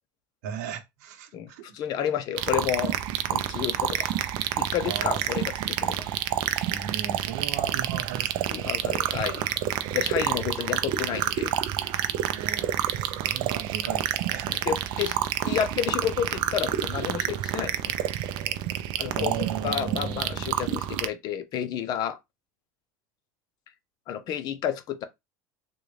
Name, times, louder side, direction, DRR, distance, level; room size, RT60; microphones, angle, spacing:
voice 1, 0.4-1.8 4.9-5.3 6.7-8.5 12.2-14.5 19.1-20.5, right 8 dB, 75° right, 0.9 m, -37 dB
voice 2, 1.3-3.0 3.3-4.1 4.6-6.1 8.5-9.5 9.9-11.5 13.9-14.0 14.5-15.2 15.4-17.9 19.0-19.4 19.6-22.2 24.1-25.1, left 9 dB, 50° left, 0.7 m, -30 dB
sound 1, 2.4-21.1, right 12 dB, 60° right, 0.5 m, -28 dB
3.8 x 2.3 x 3.2 m
supercardioid pair, 125°, 9 cm